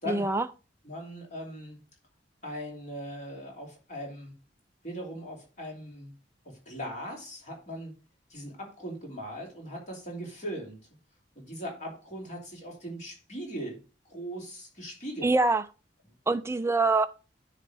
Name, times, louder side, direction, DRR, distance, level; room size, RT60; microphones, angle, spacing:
voice 1, 0.1-0.4 15.2-15.6 16.3-17.1, right 3 dB, 15° right, 0.5 m, -24 dB
voice 2, 0.8-1.8 2.4-4.3 4.8-6.1 6.4-7.9 8.3-10.8 11.3-13.8 14.0-15.3, equal, 40° left, 3.2 m, -39 dB
9.6 x 3.3 x 6.8 m
head